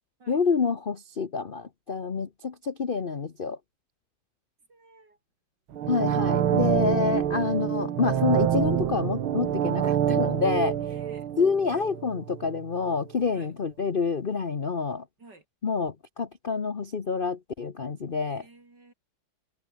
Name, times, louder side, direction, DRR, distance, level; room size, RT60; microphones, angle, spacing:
voice 1, 0.3-3.6 5.9-10.8 11.4-15.0 15.6-18.4, left 5 dB, 40° left, 0.8 m, -27 dB
voice 2, 4.7-5.2 10.8-11.3 13.3-13.5 15.2-15.4 18.2-18.9, right 3 dB, 55° right, 6.1 m, -52 dB
sound 1, 5.7-12.6 12.9-13.0, right 10 dB, 80° right, 2.2 m, -26 dB
omnidirectional pair, 2.3 m